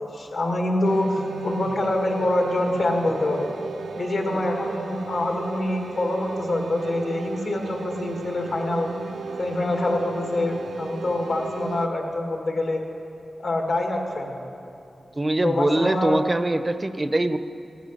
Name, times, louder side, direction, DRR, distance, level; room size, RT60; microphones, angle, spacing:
voice 1, 0.0-3.5 4.0-8.9 9.4-12.8 13.4-14.4 15.4-16.2, left 2 dB, 75° left, 2 dB, 1.8 m, -25 dB
sound 1, 0.8-11.9, right 4 dB, 90° right, 0.6 m, -34 dB
voice 2, 15.2-17.4, right 2 dB, 30° right, 11 dB, 0.5 m, -23 dB
14.5 x 9.2 x 6.5 m, 2.7 s
cardioid pair, 65°, 0 cm